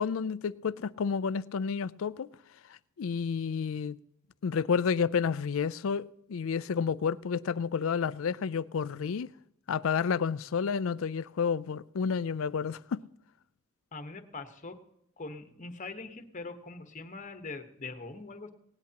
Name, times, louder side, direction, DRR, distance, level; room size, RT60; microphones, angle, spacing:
voice 1, 0.0-2.3 2.7-4.0 4.4-9.3 9.7-13.0, left 6 dB, 70° left, 0.4 m, -30 dB
voice 2, 13.9-14.7 15.2-18.5, left 3 dB, 35° left, 1.2 m, -42 dB
18.5 x 17.5 x 2.9 m
head